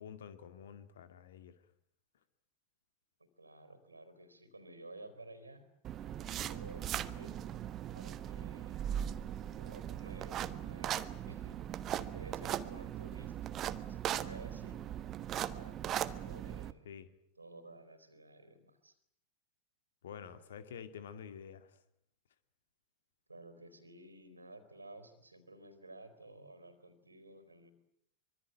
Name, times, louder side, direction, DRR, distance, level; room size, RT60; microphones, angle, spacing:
voice 1, 0.0-1.7 16.8-17.1 20.0-21.8, left 7 dB, 60° left, 11 dB, 2.3 m, -49 dB
voice 2, 3.2-5.7 6.5-7.4 7.9-9.0 9.5-11.6 11.9-14.8 15.5-16.9 17.4-19.0 23.3-27.7, right 2 dB, 80° right, 12 dB, 4.2 m, -54 dB
sound 1, 5.8-16.7, right 10 dB, 30° right, 1.3 m, -39 dB
25.0 x 24.0 x 9.1 m, 0.75 s
figure-of-eight pair, 90°, 0 cm